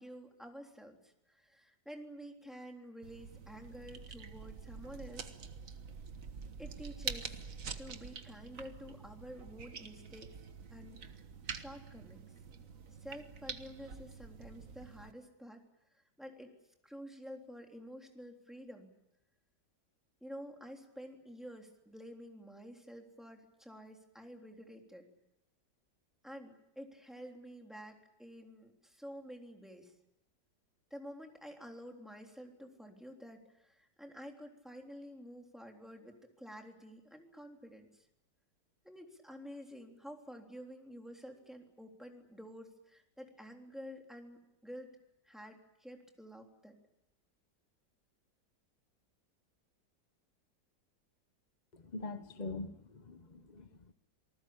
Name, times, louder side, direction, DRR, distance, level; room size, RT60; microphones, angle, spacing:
voice 1, 0.0-5.4 6.6-7.4 7.8-10.4 10.7-11.2 11.4-12.2 13.0-15.6 15.9-16.5 16.8-18.9 20.2-25.1 26.2-29.9 30.9-38.1 38.8-44.9 45.2-46.8, equal, ahead, 2 dB, 3.6 m, -50 dB
sound 1, 3.0-15.1, right 5 dB, 50° right, 1.7 m, -46 dB
voice 2, 51.9-53.9, left 3 dB, 30° left, 9 dB, 0.8 m, -43 dB
28.0 x 19.5 x 8.7 m, 0.84 s
omnidirectional pair, 1.9 m